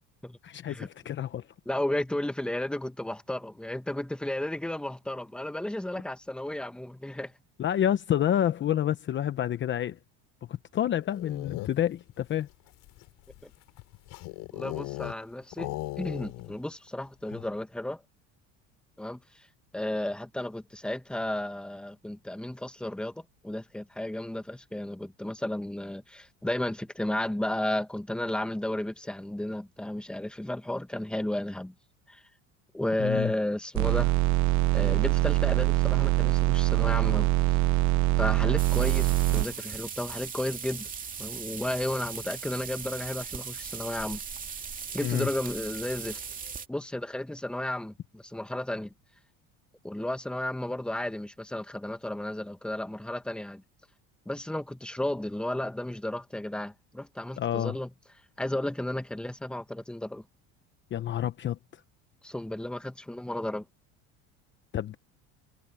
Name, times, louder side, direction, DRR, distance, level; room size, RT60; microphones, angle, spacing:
voice 1, 0.4-1.4 7.6-10.0 10.7-12.5 33.0-33.3 39.3-39.4 45.0-45.3 57.4-57.8 60.9-61.6 64.7-65.0, left 11 dB, 35° left, 0.9 m, -28 dB
voice 2, 1.6-7.3 14.5-15.7 16.0-18.0 19.0-19.2 19.7-31.7 32.1-32.2 32.7-34.1 34.7-37.3 38.2-40.9 41.2-44.2 44.9-46.2 46.7-48.9 49.8-53.6 54.2-57.9 58.4-60.2 62.2-63.6, left 1 dB, 5° left, 1.6 m, -33 dB
sound 1, 11.0-12.0 12.7-15.2 15.5-16.6 16.9-17.0 17.3-17.6, left 20 dB, 65° left, 5.3 m, -38 dB
sound 2, 33.7-39.4, right 18 dB, 60° right, 1.0 m, -24 dB
sound 3, 38.6-46.7, right 6 dB, 25° right, 2.5 m, -39 dB
cardioid pair, 125°, 32 cm